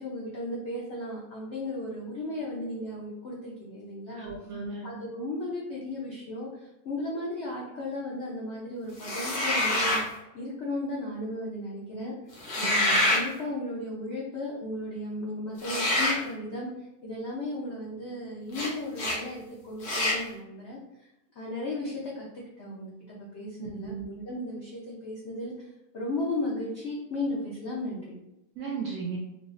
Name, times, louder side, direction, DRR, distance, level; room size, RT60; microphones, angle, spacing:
voice 1, 0.0-4.3 4.8-22.3 22.6-25.7 25.9-28.1, left 1 dB, 80° left, -4 dB, 0.6 m, -35 dB
voice 2, 4.2-4.9 12.6-13.0 23.6-24.1 28.6-29.2, right 5 dB, 70° right, -2 dB, 0.8 m, -36 dB
sound 1, 9.0-10.1 12.4-13.2 15.6-16.2 18.5-18.7 19.0-19.2 19.8-20.2, left 1 dB, 60° left, 1.2 m, -26 dB
4.7 x 2.0 x 2.5 m, 0.90 s
omnidirectional pair, 2.0 m